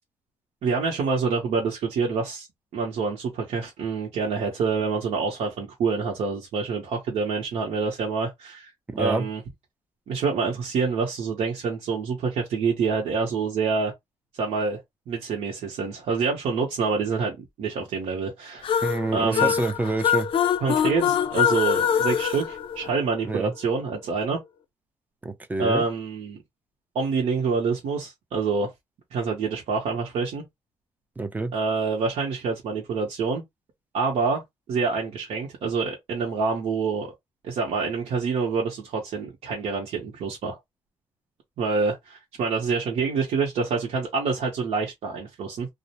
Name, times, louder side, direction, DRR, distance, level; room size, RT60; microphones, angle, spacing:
voice 1, 0.6-2.5 2.7-8.7 9.0-9.4 10.1-13.9 14.4-18.7 19.1-19.6 20.6-24.4 25.6-26.4 26.9-28.7 29.1-30.4 31.5-33.4 33.9-34.4 34.7-37.1 37.4-40.6 41.6-45.7, right 5 dB, 75° right, 0.8 m, -27 dB
voice 2, 8.9-9.3 18.8-20.3 23.2-23.5 25.2-25.8 31.2-31.5, right 3 dB, 15° right, 0.5 m, -27 dB
sound 1, 18.6-23.4, left 8 dB, 55° left, 0.4 m, -24 dB
2.5 x 2.0 x 2.8 m
cardioid pair, 120°, 11 cm